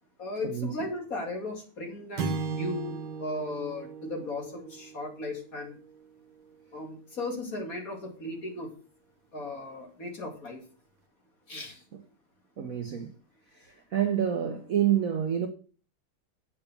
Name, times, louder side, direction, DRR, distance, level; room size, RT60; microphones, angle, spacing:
voice 1, 0.2-5.8 6.7-8.7 9.3-10.6 11.5-11.8, left 2 dB, 40° left, 2.9 m, -36 dB
sound 1, 2.2-6.6, right 4 dB, 75° right, 1.8 m, -37 dB
voice 2, 12.6-13.1 13.5-15.5, right 10 dB, 55° right, 1.1 m, -28 dB
8.8 x 7.0 x 6.8 m
omnidirectional pair, 2.3 m